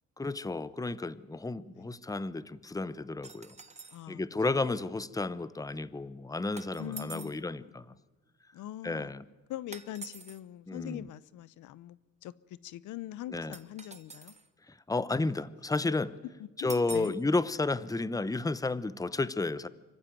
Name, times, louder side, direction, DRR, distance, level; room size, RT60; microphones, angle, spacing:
voice 1, 0.2-3.5 4.1-7.9 8.8-9.2 10.7-11.1 13.3-13.5 14.7-16.2 16.6-19.7, left 3 dB, 10° left, 0.9 m, -32 dB
sound 1, 3.2-4.0 6.6-7.4 9.7-10.4 13.5-14.5 16.7-17.2, right 4 dB, 20° right, 1.6 m, -46 dB
voice 2, 3.9-4.2 6.8-7.8 8.5-9.1 9.5-14.3 16.4-17.1, left 13 dB, 80° left, 0.7 m, -43 dB
25.5 x 15.0 x 9.4 m
cardioid pair, 90°, 30 cm